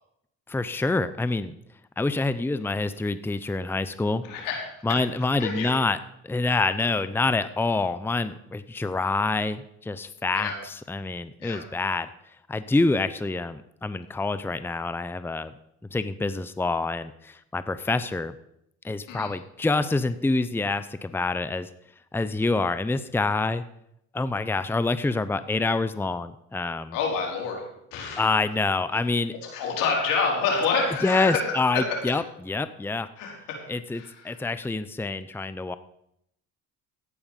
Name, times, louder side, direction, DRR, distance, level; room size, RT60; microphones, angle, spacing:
voice 1, 0.5-1.6 2.0-4.2 4.8-6.0 6.2-12.1 12.5-15.5 15.9-18.3 18.8-21.7 22.1-23.6 24.1-27.0 28.2-29.3 31.0-33.1 33.7-35.8, left 3 dB, 5° left, 13 dB, 0.7 m, -26 dB
voice 2, 4.2-4.6 5.4-5.7 10.3-10.5 11.4-11.6 19.1-19.3 26.9-27.6 27.9-28.2 29.5-31.4 33.2-33.6 33.9-34.4, left 5 dB, 85° left, -1 dB, 4.7 m, -27 dB
14.0 x 9.7 x 5.4 m, 0.76 s
supercardioid pair, 80°, 32 cm